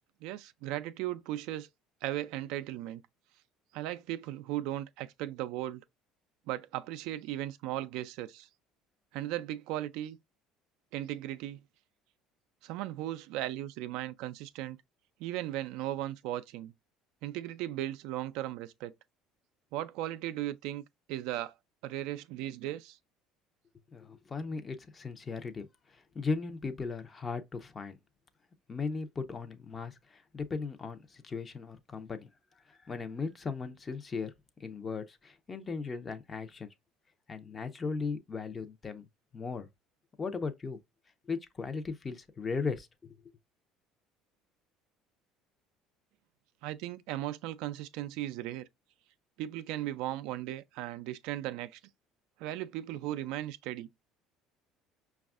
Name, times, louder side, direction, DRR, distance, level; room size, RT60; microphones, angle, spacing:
voice 1, 0.2-1.7 2.0-3.0 3.7-5.8 6.5-8.5 9.1-10.2 10.9-11.6 12.6-14.8 15.2-16.7 17.2-18.9 19.7-21.5 21.8-23.0 46.6-48.7 49.4-51.8 52.4-53.9, right 14 dB, 75° right, 0.3 m, -37 dB
voice 2, 23.9-28.0 28.7-32.3 32.7-34.3 34.6-36.7 37.3-39.1 39.3-39.7 40.2-40.8 41.3-43.2, left 4 dB, 30° left, 0.6 m, -37 dB
5.2 x 2.3 x 2.3 m
supercardioid pair, 85°, 0 cm